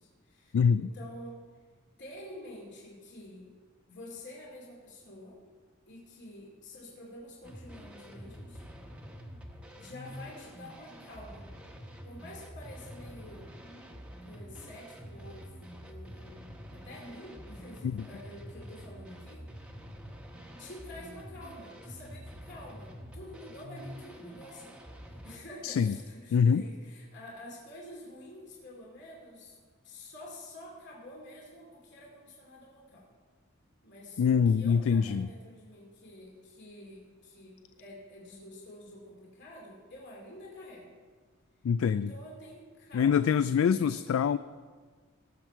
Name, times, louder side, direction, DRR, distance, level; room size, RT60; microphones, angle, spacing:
voice 1, 0.0-1.6 2.0-3.5 3.9-5.4 5.9-8.6 9.8-11.4 12.0-13.5 13.9-19.8 20.6-24.8 25.1-29.6 29.8-33.1 33.8-40.9 41.9-43.9, left 1 dB, 60° left, -4 dB, 2.6 m, -48 dB
sound 1, 7.4-25.4, equal, 5° right, 1.1 m, -47 dB
voice 2, 25.6-25.9 26.3-26.6 34.2-35.3 41.6-42.1 42.9-44.4, left 6 dB, 75° left, 13 dB, 0.3 m, -24 dB
18.5 x 7.4 x 4.5 m, 1.6 s
head